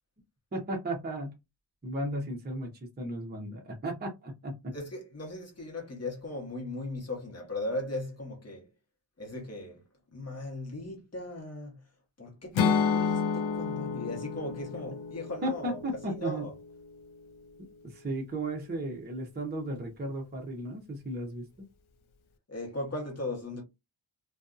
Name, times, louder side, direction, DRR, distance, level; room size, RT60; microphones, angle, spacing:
voice 1, 0.5-1.3 1.8-2.7 3.0-4.7 15.4-16.5 17.8-21.4, right 1 dB, 20° right, 0.6 m, -35 dB
voice 2, 4.7-8.7 9.2-9.8 10.1-11.8 12.2-15.8 16.1-16.5 22.5-23.6, left 2 dB, 30° left, 1.0 m, -38 dB
Acoustic guitar / Strum, 12.5-16.7, left 6 dB, 80° left, 0.6 m, -30 dB
2.5 x 2.3 x 2.4 m
wide cardioid pair, 160°, 48 cm